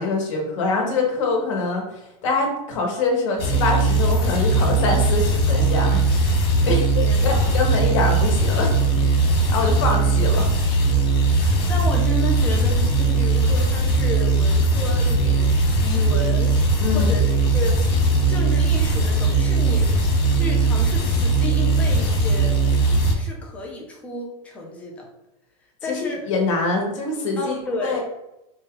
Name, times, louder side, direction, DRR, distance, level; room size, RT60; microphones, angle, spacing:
voice 1, 0.0-1.9 2.2-6.0 6.6-8.7 9.5-10.5 16.8-17.1 25.8-26.0 26.3-28.0, left 3 dB, 55° left, 0 dB, 1.2 m, -24 dB
sound 1, 3.4-23.1, right 2 dB, 40° left, 0.7 m, -19 dB
voice 2, 7.0-7.7 11.3-16.6 16.9-17.8 18.3-22.6 23.1-25.1 25.8-26.3 27.4-28.0, left 1 dB, 5° left, -2 dB, 0.4 m, -32 dB
3.8 x 2.3 x 3.7 m, 0.90 s
supercardioid pair, 175°, 19 cm